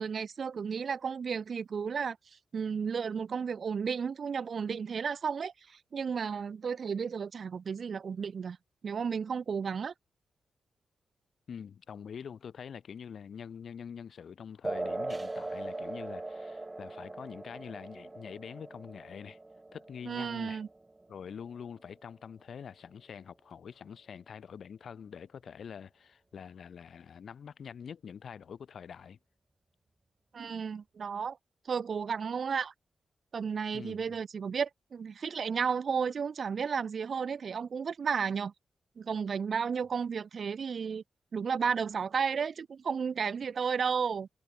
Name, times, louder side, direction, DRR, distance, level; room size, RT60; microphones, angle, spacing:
voice 1, 0.0-2.2 2.5-8.6 8.8-9.9 20.1-20.7 30.3-31.4 31.7-32.7 33.3-38.5 39.0-41.0 41.3-44.3, right 6 dB, 45° right, 1.5 m, -33 dB
voice 2, 11.5-19.4 19.7-20.6 21.1-29.2 33.7-34.2, left 7 dB, 55° left, 7.5 m, -45 dB
sound 1, 14.6-21.7, right 2 dB, 15° right, 3.0 m, -40 dB
wide cardioid pair, 160°, 0 cm